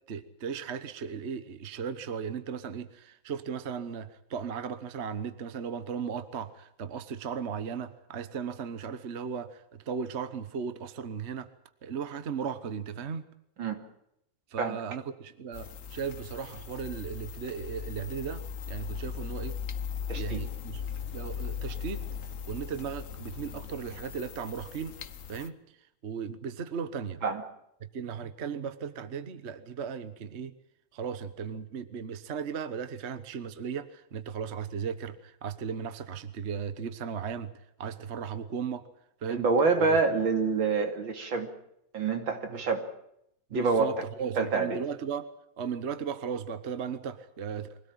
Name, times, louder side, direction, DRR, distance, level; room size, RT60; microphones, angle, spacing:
voice 1, 0.1-11.5 11.8-13.2 14.5-19.6 20.1-20.8 21.1-22.0 22.5-25.0 25.3-25.6 26.0-27.2 27.9-30.5 30.9-37.5 37.8-38.9 39.2-39.4 39.8-40.0 42.5-42.6 43.5-45.3 45.6-47.8, right 6 dB, 40° right, 12 dB, 1.3 m, -36 dB
sound 1, 15.5-25.5, left 7 dB, 50° left, 1.2 m, -38 dB
voice 2, 20.1-20.4 27.2-27.4 39.3-41.5 41.9-42.9 43.5-43.9 44.4-44.8, right 4 dB, 75° right, 6 dB, 3.3 m, -27 dB
24.0 x 17.5 x 8.8 m, 0.77 s
omnidirectional pair, 2.2 m